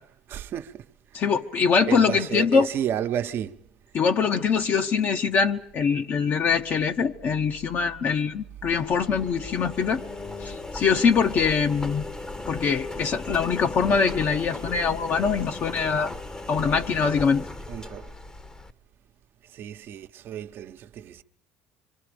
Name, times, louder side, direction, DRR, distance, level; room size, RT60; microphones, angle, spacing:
voice 1, 0.3-0.7 1.9-3.5 17.7-18.1 19.6-21.2, right 10 dB, 55° right, 1.0 m, -31 dB
voice 2, 1.1-2.7 3.9-10.0 10.4-12.1 12.5-16.1 16.5-17.5, left 5 dB, 50° left, 1.1 m, -23 dB
Engine, 8.7-18.7, left 2 dB, 15° left, 1.0 m, -37 dB
26.0 x 25.0 x 5.2 m
supercardioid pair, 80°, 4 cm